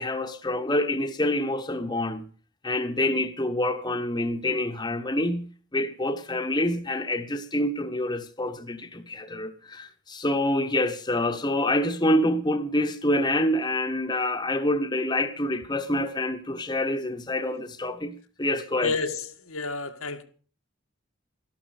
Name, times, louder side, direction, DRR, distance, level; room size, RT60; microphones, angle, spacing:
voice 1, 0.0-2.2 2.6-18.9, left 1 dB, 20° left, 1.2 m, -27 dB
voice 2, 18.8-20.2, left 3 dB, 85° left, 1.8 m, -30 dB
13.5 x 12.0 x 6.6 m
head